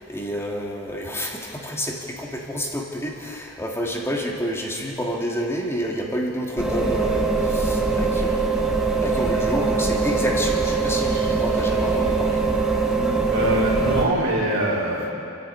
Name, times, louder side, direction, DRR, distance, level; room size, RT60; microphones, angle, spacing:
voice 1, 0.0-12.4, equal, 10° left, -1 dB, 2.3 m, -29 dB
sound 1, 6.6-14.0, right 4 dB, 5° right, 1.7 m, -22 dB
voice 2, 13.3-15.1, right 1 dB, 65° right, -5 dB, 3.8 m, -23 dB
29.5 x 11.5 x 8.5 m, 2.8 s
head